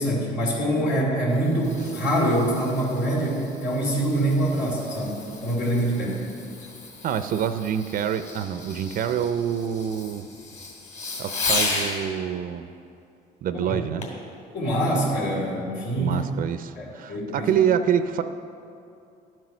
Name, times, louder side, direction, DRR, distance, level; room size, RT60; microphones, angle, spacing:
voice 1, 0.0-6.2 13.5-13.8 14.5-16.1 16.8-17.5, right 1 dB, 85° left, -4 dB, 2.8 m, -25 dB
Fireworks, 1.0-12.0 14.0-14.3 14.9-15.0, left 3 dB, 45° left, 2.5 m, -34 dB
voice 2, 7.0-10.3 11.2-12.6 13.4-14.1 16.0-18.2, right 8 dB, 55° right, 10 dB, 0.5 m, -26 dB
12.0 x 7.6 x 6.0 m, 2.6 s
cardioid pair, 110°, 17 cm